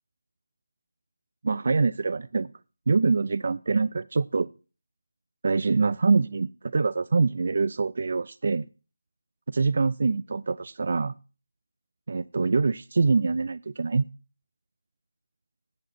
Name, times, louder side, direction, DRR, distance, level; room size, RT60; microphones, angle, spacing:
voice 1, 1.4-2.5 2.9-4.5 5.4-8.7 9.5-11.1 12.1-14.0, right 4 dB, 50° right, 14 dB, 0.4 m, -24 dB
9.4 x 7.4 x 5.8 m, 0.34 s
figure-of-eight pair, 165°, 0 cm